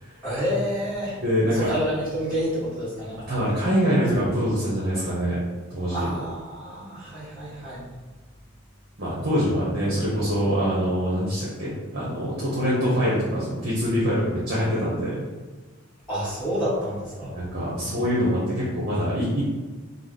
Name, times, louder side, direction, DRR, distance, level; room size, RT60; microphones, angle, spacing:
voice 1, 0.2-1.2 1.5-3.2 5.9-7.9 16.1-17.3, equal, ahead, -15 dB, 1.4 m, -29 dB
voice 2, 1.2-1.8 3.3-5.4 5.7-6.1 9.0-15.2 17.3-19.4, equal, 45° right, -7 dB, 0.9 m, -24 dB
5.0 x 2.0 x 3.8 m, 1.3 s
head